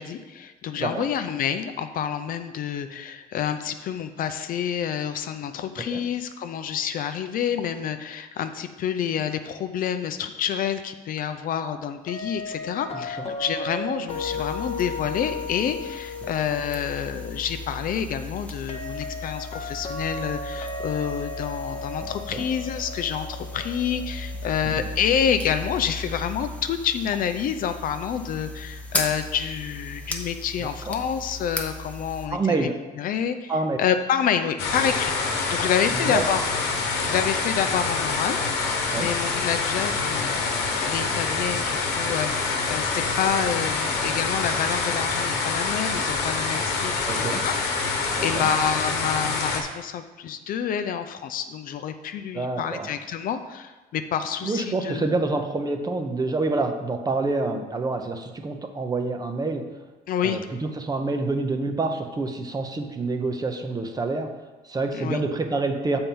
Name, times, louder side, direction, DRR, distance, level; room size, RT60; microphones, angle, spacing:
voice 1, 0.0-32.7 33.0-33.5 33.8-35.1 35.5-36.4 37.0-55.1 60.1-60.4 64.9-65.2, left 8 dB, 55° left, 9 dB, 0.5 m, -28 dB
sound 1, 12.1-24.9, left 3 dB, 40° left, 0.9 m, -36 dB
sound 2, 14.1-32.3, left 2 dB, 10° left, 0.8 m, -37 dB
voice 2, 22.0-22.4 24.6-24.7 30.9-31.0 32.3-32.8 33.5-33.8 36.1-36.2 38.9-39.1 47.0-47.4 48.2-48.5 52.3-52.9 54.4-59.6 60.2-64.3 64.6-66.0, right 3 dB, 20° right, 6 dB, 0.7 m, -27 dB
sound 3, 34.6-49.6, left 4 dB, 85° left, 1.0 m, -26 dB
7.1 x 4.4 x 5.3 m, 1.2 s
cardioid pair, 110°, 17 cm